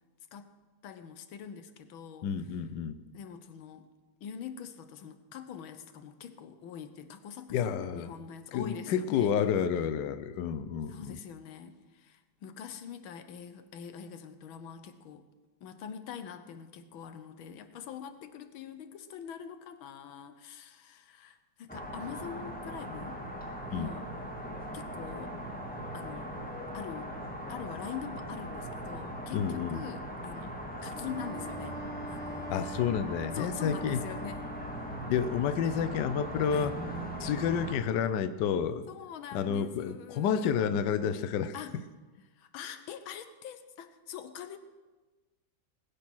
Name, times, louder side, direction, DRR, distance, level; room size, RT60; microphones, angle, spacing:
voice 1, 0.8-2.3 3.1-3.9 4.2-9.3 10.9-15.2 15.6-23.2 23.7-24.1 24.7-25.4 25.9-26.3 26.7-27.2 27.5-31.8 32.1-32.5 33.3-34.5 36.5-36.8 38.9-40.5 41.5-41.8 42.4-44.6, left 8 dB, 85° left, 10 dB, 1.7 m, -44 dB
voice 2, 2.2-3.0 7.5-8.1 8.5-11.2 23.7-23.9 29.3-29.8 32.5-34.0 35.0-36.7 37.2-38.9 39.3-41.5, left 7 dB, 70° left, 11 dB, 1.3 m, -30 dB
sound 1, 21.7-37.8, equal, 5° left, 1.5 m, -40 dB
Wind instrument woodwind instrument, 30.9-35.2, equal, 40° left, 1.9 m, -44 dB
19.5 x 8.5 x 6.1 m, 1.2 s
omnidirectional pair, 2.2 m